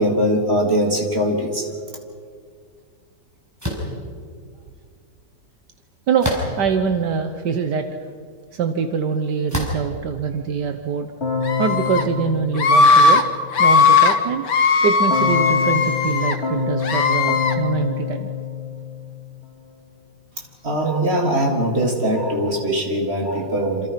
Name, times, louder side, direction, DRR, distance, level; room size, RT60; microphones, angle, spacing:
voice 1, 0.0-1.7 20.6-23.9, right 1 dB, 35° right, 1 dB, 3.8 m, -21 dB
sound 1, 3.6-3.9 6.2-6.8 7.5-7.6 9.5-9.9, left 1 dB, 10° right, 5.5 m, -25 dB
voice 2, 6.1-8.1 8.5-11.1 11.6-13.2 13.6-14.5 14.8-18.3, right 6 dB, 75° right, 7 dB, 1.7 m, -24 dB
Keyboard (musical), 11.2-13.5 15.1-19.4, left 6 dB, 40° left, 6.5 m, -26 dB
Screaming, 11.4-12.0 12.6-13.2 13.5-14.1 14.5-16.3 16.8-17.5, left 4 dB, 80° left, 2.3 m, -17 dB
27.5 x 27.0 x 5.8 m, 2.1 s
omnidirectional pair, 1.8 m